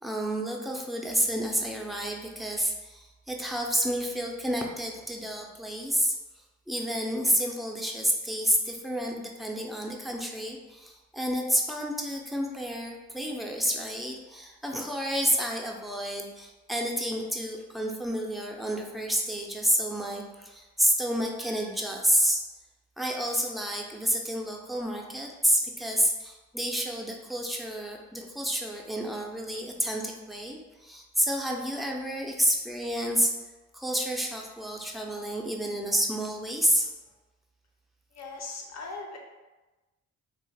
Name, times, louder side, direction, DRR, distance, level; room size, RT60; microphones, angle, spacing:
voice 1, 0.0-6.2 6.7-22.4 23.0-33.3 33.7-36.9, equal, ahead, 0 dB, 0.4 m, -29 dB
voice 2, 38.1-39.2, left 3 dB, 60° left, 1 dB, 0.7 m, -39 dB
2.4 x 2.2 x 3.3 m, 1.1 s
cardioid pair, 90°, 30 cm